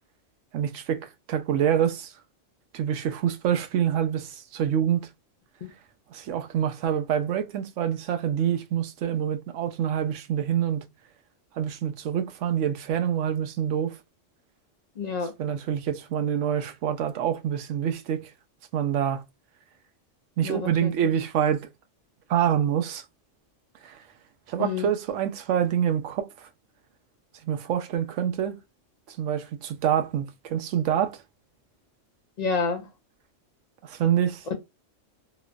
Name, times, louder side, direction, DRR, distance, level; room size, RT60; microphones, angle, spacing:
voice 1, 0.5-2.1 2.7-5.1 6.1-10.8 11.5-14.0 15.4-18.3 18.7-19.2 20.4-21.7 22.3-23.0 23.8-24.0 24.5-26.5 27.4-28.6 29.1-31.2 33.8-34.4, right 9 dB, 80° right, 0.9 m, -26 dB
voice 2, 15.0-15.3 20.4-20.9 24.6-24.9 32.4-32.9, left 4 dB, 75° left, 0.4 m, -29 dB
3.0 x 2.1 x 2.3 m
omnidirectional pair, 1.3 m